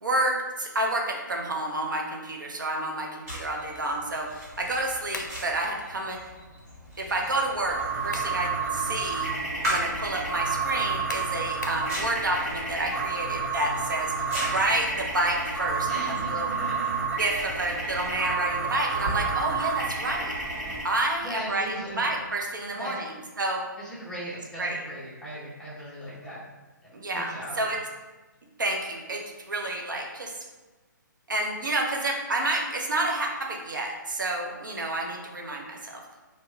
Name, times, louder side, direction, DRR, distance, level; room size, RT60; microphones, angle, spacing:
voice 1, 0.0-6.2 7.0-9.3 9.7-16.5 17.2-20.3 20.8-23.1 23.4-23.7 24.6-24.8 26.9-27.8 28.6-30.3 31.3-36.0, right 2 dB, 70° right, 1 dB, 0.6 m, -29 dB
sound 1, 3.2-22.4, equal, 45° right, 1.3 m, -40 dB
sound 2, 5.1-5.4 7.8-8.4 8.9-9.0 11.1-11.9, left 3 dB, 60° left, 0.5 m, -37 dB
sound 3, 7.7-20.8, right 5 dB, 10° right, 1.1 m, -30 dB
voice 2, 15.8-17.0 21.2-22.1 22.7-23.0 23.8-26.4 27.1-27.7, right 1 dB, 5° left, -9 dB, 0.7 m, -38 dB
2.9 x 2.1 x 3.3 m, 1.2 s
figure-of-eight pair, 135°, 11 cm